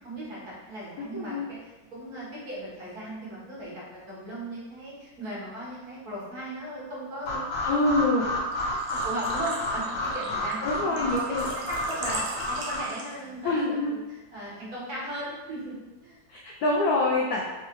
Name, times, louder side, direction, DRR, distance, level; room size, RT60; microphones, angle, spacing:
voice 1, 0.0-7.5 8.7-11.3 11.7-15.7 16.0-16.2, right 1 dB, 50° right, -8 dB, 1.8 m, -37 dB
voice 2, 1.1-1.5 7.6-8.3 10.6-11.5 13.4-13.9 16.3-17.4, left 2 dB, 90° left, -3 dB, 0.8 m, -25 dB
sound 1, 7.3-12.8, left 1 dB, 50° left, 1.0 m, -31 dB
Engine / Trickle dribble / Fill (with liquid), 8.5-13.4, right 3 dB, 85° right, 1.6 m, -39 dB
4.3 x 3.3 x 3.0 m, 1.2 s
omnidirectional pair, 2.2 m